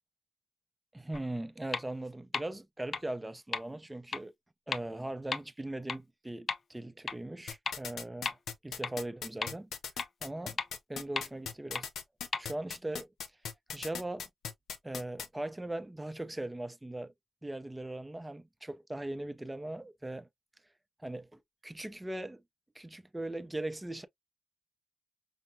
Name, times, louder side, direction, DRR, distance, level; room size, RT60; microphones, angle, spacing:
voice 1, 0.9-4.3 4.7-9.8 10.2-10.6 10.9-11.9 12.4-13.4 13.7-14.3 14.8-17.1 17.4-20.3 21.0-22.4 22.7-24.1, right 1 dB, 10° right, 0.5 m, -40 dB
sound 1, 1.1-1.2 1.7-1.8 2.3-2.4 2.9-3.0 3.5-3.6 4.1-4.2 4.7-4.8 5.3-5.4 5.9-6.0 6.5-6.6 7.1-7.2 7.7-7.8 8.2-8.3 8.8-8.9 9.4-9.5 10.0-10.1 10.6-10.7 11.2-11.3 11.7-11.8 12.3-12.4, left 5 dB, 50° left, 0.4 m, -33 dB
sound 2, 7.5-15.3, left 7 dB, 80° left, 0.7 m, -39 dB
5.6 x 2.1 x 2.6 m
cardioid pair, 90°, 0 cm